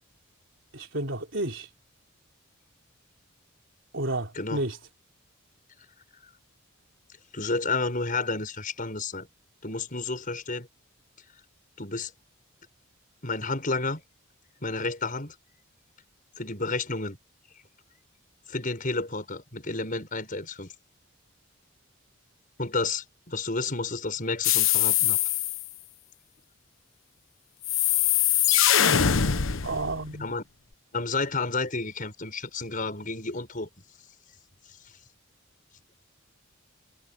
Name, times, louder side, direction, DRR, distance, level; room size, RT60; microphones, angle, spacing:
voice 1, 0.7-1.7 3.9-4.8 29.6-30.3, right 2 dB, 60° right, 4.2 m, -31 dB
voice 2, 7.3-9.3 9.6-10.7 11.8-12.1 13.2-14.0 14.6-15.3 16.4-17.2 18.5-20.7 22.6-25.2 30.2-30.4 30.9-33.7, left 3 dB, 40° left, 6.7 m, -31 dB
sound 1, 24.4-25.7 27.6-30.1, left 10 dB, 75° left, 1.0 m, -22 dB
head